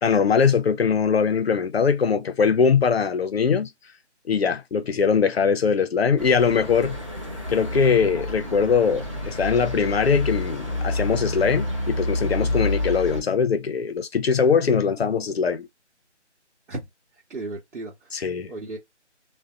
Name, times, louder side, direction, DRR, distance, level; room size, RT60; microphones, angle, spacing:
voice 1, 0.0-3.7 4.3-7.0 7.5-15.7 18.1-18.5, left 6 dB, 60° left, 0.5 m, -21 dB
sound 1, 6.2-13.2, left 1 dB, 25° right, 0.6 m, -29 dB
voice 2, 17.3-18.1 18.5-18.8, right 2 dB, 70° right, 1.0 m, -34 dB
2.5 x 2.0 x 2.4 m
figure-of-eight pair, 170°, 36 cm